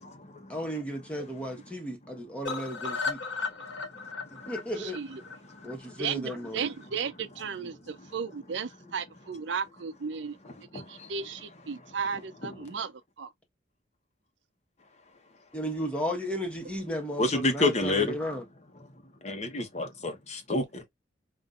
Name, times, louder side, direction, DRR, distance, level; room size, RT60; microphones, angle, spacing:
voice 1, 0.5-3.2 4.5-5.0 5.6-6.7 15.5-18.4, equal, 5° left, 1.2 m, -34 dB
sound 1, 2.4-6.5 6.8-6.9 7.2-7.3 7.6-7.7, left 4 dB, 75° left, 1.4 m, -36 dB
voice 2, 4.8-5.2 6.0-10.4 10.7-13.3, right 6 dB, 70° right, 0.5 m, -35 dB
voice 3, 10.7-11.1 17.2-18.1 19.2-20.8, left 2 dB, 35° left, 1.0 m, -28 dB
5.4 x 2.6 x 2.4 m
head